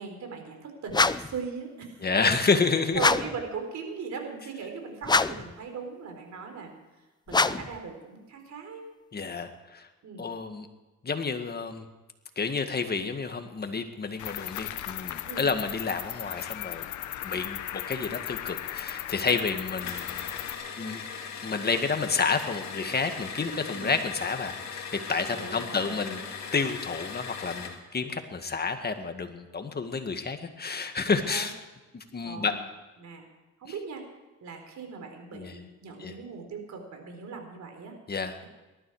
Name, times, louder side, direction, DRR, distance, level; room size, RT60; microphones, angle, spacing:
voice 1, 0.0-2.0 2.9-6.7 7.3-8.8 10.0-10.3 15.3-15.5 23.7-24.0 25.3-26.3 31.1-31.5 32.2-32.6 33.0-33.2 33.6-34.0 34.4-37.9 38.4-38.5, right 5 dB, 65° right, 4 dB, 4.1 m, -39 dB
sound 1, 0.9-1.4 2.9-3.4 5.0-5.5 7.3-7.8, left 4 dB, 15° left, 0.5 m, -24 dB
voice 2, 2.0-3.0 9.1-9.9 10.2-10.7 11.0-11.8 12.4-16.9 17.2-20.2 20.8-21.0 21.4-26.2 26.5-31.5 32.1-32.5 35.3-35.5 36.0-36.1 38.1-38.3, left 4 dB, 35° left, 7 dB, 1.8 m, -29 dB
Cricket, 14.2-20.6, left 12 dB, 80° left, 1.0 m, -37 dB
sound 2, 19.8-27.8, left 6 dB, 65° left, 2.5 m, -39 dB
19.0 x 13.0 x 4.8 m, 1.2 s
cardioid pair, 90°, 30 cm